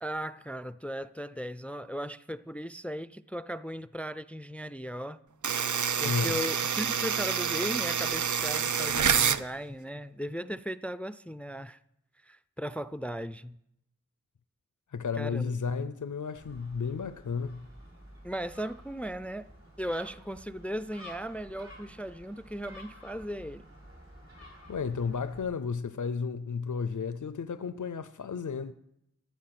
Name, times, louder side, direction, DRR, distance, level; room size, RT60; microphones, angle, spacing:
voice 1, 0.0-5.2 6.0-11.8 12.2-13.6 15.2-15.9 18.2-19.5 19.8-23.7, equal, 5° left, 0.4 m, -37 dB
sound 1, 5.4-9.4, right 7 dB, 80° right, 0.5 m, -27 dB
voice 2, 6.0-6.4 14.9-17.7 24.7-28.7, left 5 dB, 90° left, 0.5 m, -33 dB
Gull seagull, 16.4-25.4, equal, 45° right, 5.0 m, -51 dB
14.5 x 9.3 x 5.9 m
wide cardioid pair, 40°, 30 cm